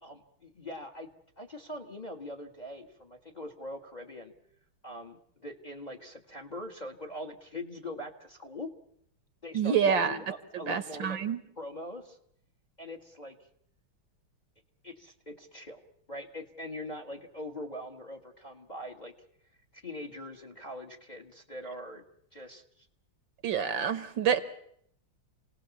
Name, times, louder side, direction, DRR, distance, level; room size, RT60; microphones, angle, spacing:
voice 1, 0.0-1.1 1.4-4.3 4.8-8.7 9.4-11.2 11.6-12.2 12.8-13.4 14.8-15.8 16.1-19.1 19.7-22.0 22.3-22.9, left 1 dB, 25° left, 6 dB, 1.4 m, -42 dB
voice 2, 9.5-10.2 10.7-11.4 23.4-24.4, right 7 dB, 65° right, 11 dB, 1.8 m, -27 dB
28.0 x 18.5 x 7.1 m, 0.69 s
omnidirectional pair, 2.3 m